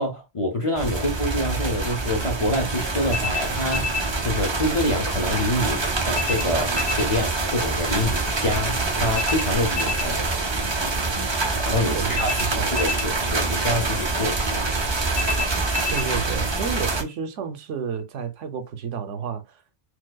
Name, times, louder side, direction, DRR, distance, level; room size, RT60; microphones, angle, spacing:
voice 1, 0.0-10.2 11.6-12.3 12.7-14.6, left 1 dB, 40° left, 0.5 m, -26 dB
sound 1, 0.8-17.0, right 3 dB, 35° right, 0.5 m, -25 dB
sound 2, 3.1-4.1 6.1-7.1 9.1-10.1 12.1-13.1 15.1-16.1, left 5 dB, 60° right, 2.2 m, -29 dB
voice 2, 11.9-12.7 15.9-19.6, right 6 dB, 85° right, 1.0 m, -31 dB
4.6 x 2.1 x 2.2 m
omnidirectional pair, 1.2 m